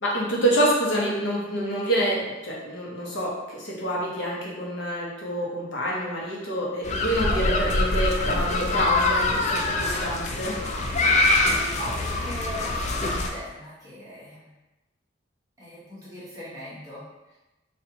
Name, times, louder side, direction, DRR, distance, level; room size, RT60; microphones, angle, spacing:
voice 1, 0.0-10.6, right 1 dB, 70° left, -5 dB, 1.0 m, -27 dB
sound 1, 6.8-13.3, left 2 dB, 35° left, 0.4 m, -24 dB
voice 2, 11.3-14.5 15.6-17.0, equal, 15° right, -9 dB, 1.0 m, -39 dB
4.2 x 2.5 x 2.8 m, 1.0 s
head